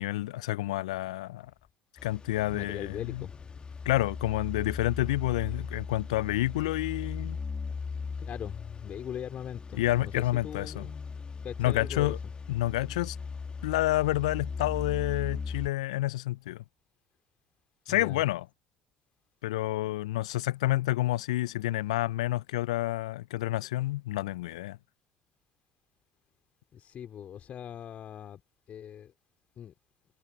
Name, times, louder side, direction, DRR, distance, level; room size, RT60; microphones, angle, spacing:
voice 1, 0.0-1.5 2.0-3.2 3.8-7.4 9.7-10.9 11.6-12.2 12.5-13.2 13.6-16.6 17.9-18.4 19.4-24.8, left 16 dB, 75° left, 0.6 m, -29 dB
sound 1, 2.0-15.7, left 5 dB, 30° left, 1.6 m, -38 dB
voice 2, 2.5-3.6 8.2-11.0 11.4-12.1 17.9-18.2 26.7-28.4 28.7-29.1 29.6-29.7, left 9 dB, 45° left, 3.0 m, -40 dB
hypercardioid pair, 60°, 3 cm